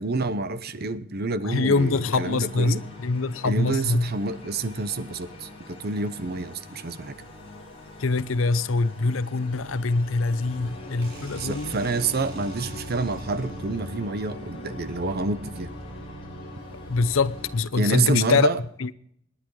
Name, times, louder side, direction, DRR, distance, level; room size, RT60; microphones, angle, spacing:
voice 1, 0.0-2.8 3.4-7.2 11.3-15.7 17.8-18.6, right 3 dB, 50° right, 0.9 m, -28 dB
voice 2, 1.4-4.1 8.0-11.8 16.9-18.5 18.8-18.9, left 3 dB, 90° left, 0.7 m, -24 dB
sound 1, 1.7-17.6, equal, 30° left, 4.9 m, -41 dB
sound 2, 11.0-13.9, right 4 dB, 75° right, 4.7 m, -48 dB
27.5 x 10.0 x 3.2 m
head